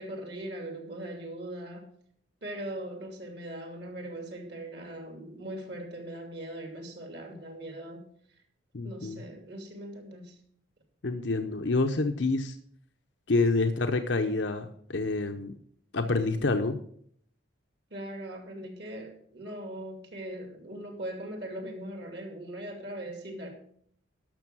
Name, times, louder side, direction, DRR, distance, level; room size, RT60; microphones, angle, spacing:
voice 1, 0.0-1.9 2.4-8.1 8.8-10.4 17.9-23.5, right 1 dB, 55° right, 4 dB, 2.6 m, -40 dB
voice 2, 8.7-9.2 11.0-12.6 13.3-15.5 15.9-16.8, left 3 dB, 65° left, 6 dB, 0.8 m, -27 dB
12.0 x 6.4 x 6.2 m, 0.63 s
head